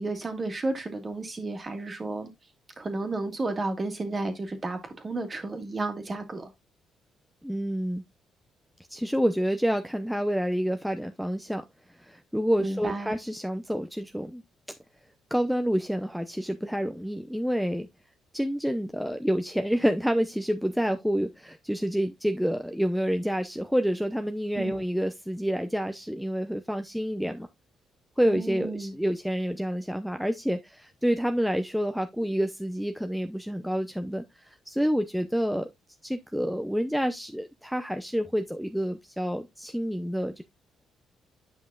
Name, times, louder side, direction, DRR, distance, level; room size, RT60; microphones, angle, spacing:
voice 1, 0.0-2.3 2.8-6.5 12.6-13.1 24.6-24.8 28.3-28.9, right 2 dB, 30° right, 1.8 m, -32 dB
voice 2, 7.4-8.0 8.9-11.6 12.0-14.4 14.7-14.8 15.3-17.9 18.3-27.5 28.2-35.7 36.0-40.4, equal, ahead, 0.6 m, -28 dB
9.6 x 5.7 x 2.3 m
cardioid pair, 90°, 0 cm